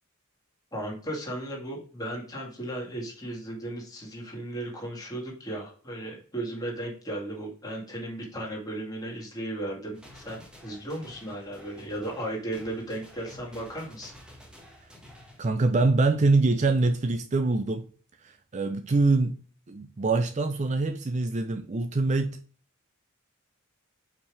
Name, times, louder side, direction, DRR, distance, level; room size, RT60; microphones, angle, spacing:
voice 1, 0.7-14.1, right 1 dB, 15° left, 2.1 m, -35 dB
sound 1, 9.9-15.5, left 1 dB, 5° right, 1.5 m, -51 dB
voice 2, 15.4-17.8 18.2-19.4 19.7-22.4, right 3 dB, 35° right, 0.4 m, -24 dB
5.2 x 5.2 x 4.8 m
head